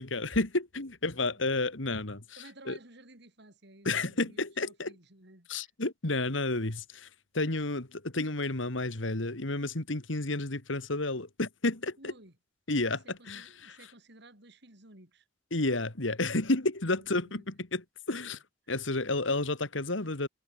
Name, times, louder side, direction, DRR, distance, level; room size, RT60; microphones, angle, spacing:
voice 1, 0.0-2.2 2.7-2.8 3.9-4.9 5.5-7.1 7.3-12.1 12.7-13.8 15.5-18.4 18.7-20.3, left 2 dB, 75° left, 2.4 m, -31 dB
voice 2, 2.4-5.7 12.0-12.3 12.9-15.3 17.0-17.7 18.6-18.8, right 2 dB, 60° right, 6.4 m, -55 dB
head